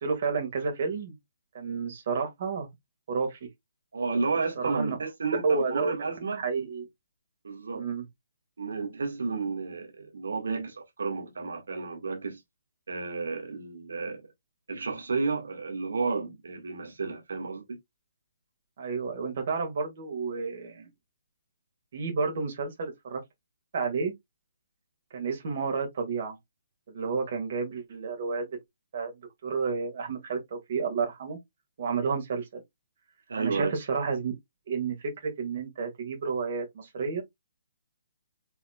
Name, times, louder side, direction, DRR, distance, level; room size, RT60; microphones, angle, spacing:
voice 1, 0.0-1.1 1.5-2.7 3.1-3.4 4.6-5.0 5.4-5.9 6.3-6.9 7.7-8.0 18.8-20.9 21.9-23.2 23.7-24.1 25.1-26.4 26.9-28.5 28.9-29.1 29.4-31.4 31.8-32.6 33.4-34.3 34.7-37.2, right 5 dB, 55° right, 2.1 m, -30 dB
voice 2, 3.9-6.4 7.4-7.9 8.6-12.4 12.9-14.2 14.7-17.8 33.3-33.8, right 4 dB, 70° right, 1.7 m, -32 dB
5.6 x 4.1 x 2.3 m
figure-of-eight pair, 140°, 0 cm